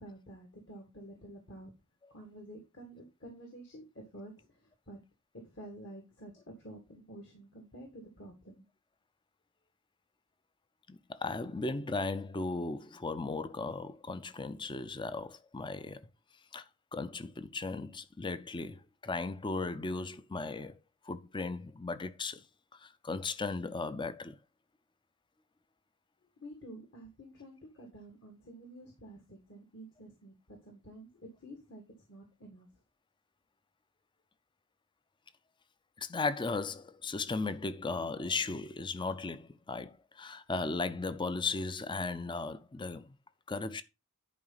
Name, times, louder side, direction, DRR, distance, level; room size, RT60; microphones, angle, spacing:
voice 1, 0.0-1.7 2.1-5.0 5.4-8.6 26.4-32.7, right 1 dB, 55° left, 1.9 m, -50 dB
voice 2, 10.9-16.1 16.5-16.6 16.9-20.8 21.1-22.4 22.8-24.4 36.0-43.1 43.5-43.8, left 3 dB, 20° left, 0.5 m, -36 dB
10.5 x 4.8 x 3.9 m
head